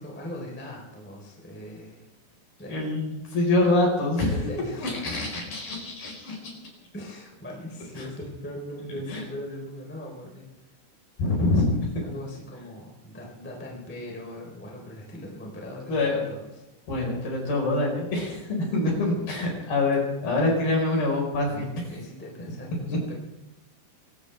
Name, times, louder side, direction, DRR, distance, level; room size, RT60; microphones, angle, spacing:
voice 1, 0.0-2.0 2.6-2.9 4.2-5.0 6.9-10.4 11.2-16.5 21.5-23.1, left 1 dB, 5° left, -2 dB, 2.8 m, -40 dB
voice 2, 2.7-4.3 4.8-6.5 8.0-8.1 9.1-9.2 11.2-11.6 15.9-16.2 16.9-21.7 22.9-23.0, left 2 dB, 50° left, -1 dB, 6.4 m, -25 dB
23.5 x 16.5 x 3.5 m, 1.0 s
omnidirectional pair, 5.7 m